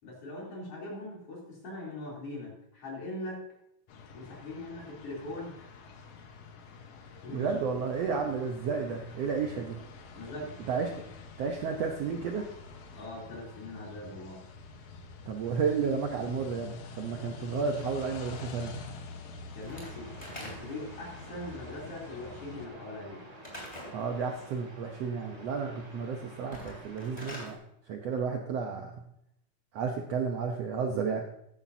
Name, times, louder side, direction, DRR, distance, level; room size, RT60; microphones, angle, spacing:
voice 1, 0.0-3.4 4.1-5.8 7.1-7.8 10.2-10.6 12.9-14.4 19.5-20.1 20.4-23.2, left 1 dB, 45° left, -3 dB, 4.1 m, -41 dB
sound 1, 3.9-22.7, left 4 dB, 70° left, 2.5 m, -47 dB
voice 2, 7.3-9.8 10.7-10.9 11.4-12.5 15.3-18.7 23.9-27.6 27.9-28.9 29.7-31.2, right 5 dB, 70° right, 3 dB, 1.6 m, -32 dB
Slam / Wood, 19.6-20.9 23.4-24.0 26.4-27.5, equal, 10° left, 2.7 m, -44 dB
sound 2, 19.6-27.2, equal, 20° right, 1.0 m, -50 dB
13.5 x 10.0 x 2.7 m, 0.77 s
omnidirectional pair, 3.8 m